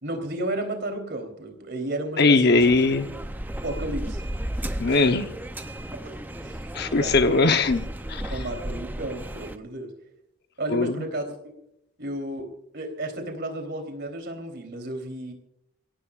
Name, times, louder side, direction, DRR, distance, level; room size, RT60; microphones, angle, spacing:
voice 1, 0.0-2.7 3.6-4.2 4.6-5.1 6.1-6.2 6.4-7.1 8.3-9.9 10.6-11.4 12.0-15.3, right 1 dB, 50° right, 4 dB, 3.5 m, -33 dB
voice 2, 2.2-3.1 4.8-5.3 6.7-7.8 8.1-8.3 10.7-11.0, left 3 dB, 50° left, 8 dB, 0.9 m, -20 dB
sound 1, 2.5-9.6, right 1 dB, 10° right, 0.6 m, -34 dB
28.5 x 16.5 x 2.5 m, 0.78 s
head